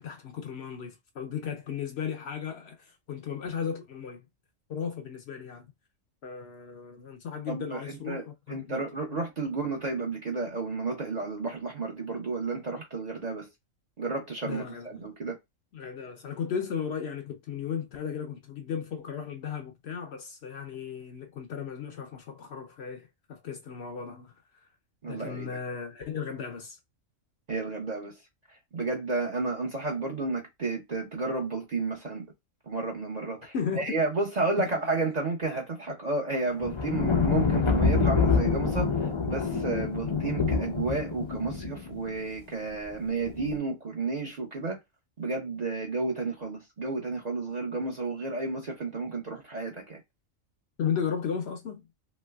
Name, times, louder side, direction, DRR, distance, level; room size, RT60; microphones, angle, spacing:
voice 1, 0.0-4.3 4.7-5.7 6.2-8.8 9.1-9.2 14.4-14.9 15.7-24.3 25.1-26.8 33.5-34.0 34.6-34.7 50.8-51.9, left 7 dB, 65° left, 0.7 m, -35 dB
voice 2, 7.5-8.2 8.5-13.5 14.0-15.4 25.0-25.6 27.5-28.1 28.5-32.2 32.7-44.8 45.2-50.0, right 3 dB, 40° right, 0.6 m, -32 dB
sound 1, 36.6-42.1 43.3-43.6, left 4 dB, 45° left, 0.3 m, -26 dB
3.1 x 3.0 x 2.2 m
omnidirectional pair, 1.4 m